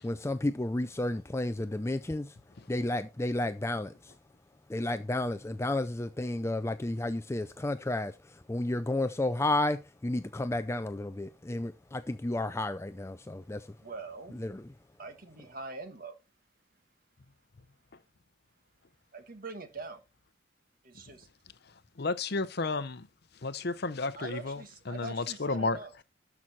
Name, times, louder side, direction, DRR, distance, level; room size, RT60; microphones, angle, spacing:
voice 1, 0.0-2.3 2.7-4.1 4.7-13.7 14.4-14.6, left 1 dB, 15° left, 0.4 m, -32 dB
voice 2, 13.8-14.4 15.0-16.2 19.1-20.0 20.8-21.3 24.1-26.0, right 3 dB, 45° right, 1.5 m, -43 dB
voice 3, 22.0-23.1 23.4-24.6 24.9-25.8, left 3 dB, 55° left, 0.7 m, -32 dB
12.5 x 6.1 x 4.2 m
head